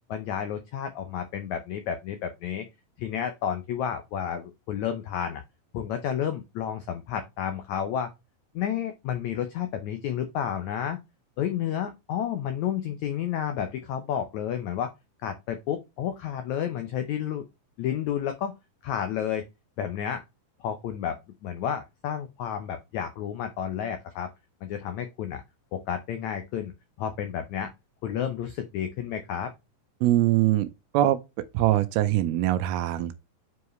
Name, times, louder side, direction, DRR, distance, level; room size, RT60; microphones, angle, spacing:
voice 1, 0.1-2.7 3.0-5.4 5.7-8.1 8.5-11.0 11.4-14.9 15.2-17.4 17.8-18.5 18.8-19.4 19.8-20.2 20.6-24.3 24.6-25.4 25.7-26.7 27.0-27.7 28.0-29.5, left 9 dB, 80° left, 1.6 m, -31 dB
voice 2, 30.0-30.7 30.9-31.2 31.5-33.1, right 14 dB, 85° right, 2.5 m, -22 dB
8.2 x 4.7 x 3.1 m
omnidirectional pair, 4.3 m